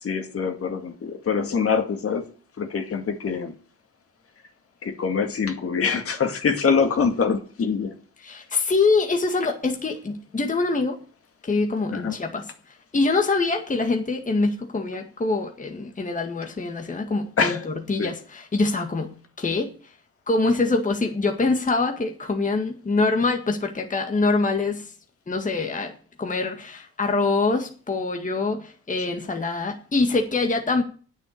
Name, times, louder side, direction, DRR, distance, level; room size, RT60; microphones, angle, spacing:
voice 1, 0.0-2.2 2.6-3.5 4.8-7.9 11.9-12.2 17.4-17.7 18.0-18.1, left 5 dB, 50° left, 2.2 m, -24 dB
voice 2, 8.2-11.0 11.4-12.4 12.9-19.7 20.3-24.9 25.3-25.9 26.2-30.8, left 3 dB, 25° left, 1.8 m, -24 dB
9.3 x 8.1 x 8.7 m
cardioid pair, 90°, 30 cm